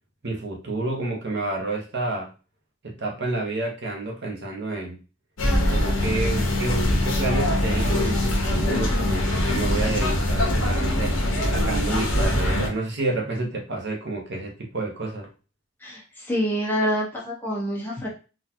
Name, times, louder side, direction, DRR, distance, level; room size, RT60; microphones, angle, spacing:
voice 1, 0.2-2.3 2.8-5.0 5.7-11.1 11.5-15.3, right 2 dB, 55° right, 0 dB, 0.8 m, -29 dB
sound 1, 5.4-12.7, left 1 dB, 65° left, 1.0 m, -23 dB
voice 2, 15.8-18.1, equal, 10° left, -5 dB, 1.1 m, -26 dB
3.9 x 2.4 x 2.8 m, 0.33 s
head